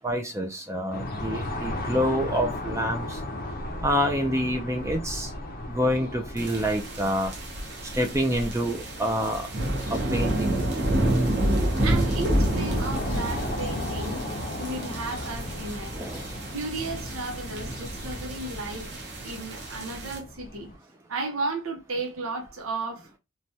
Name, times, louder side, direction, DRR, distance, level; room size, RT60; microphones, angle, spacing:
voice 1, 0.0-3.2 3.8-5.3 5.7-7.3 7.9-9.5 9.9-10.6 15.9-16.3, equal, 15° right, 0.3 m, -27 dB
sound 1, 0.9-20.8, left 1 dB, 45° left, 0.5 m, -36 dB
sound 2, 6.4-20.2, right 1 dB, 55° right, 0.9 m, -29 dB
voice 2, 11.0-14.2 14.5-15.9 16.5-18.9 19.2-20.7 21.1-23.1, right 3 dB, 85° right, 0.8 m, -34 dB
3.2 x 2.2 x 2.7 m
head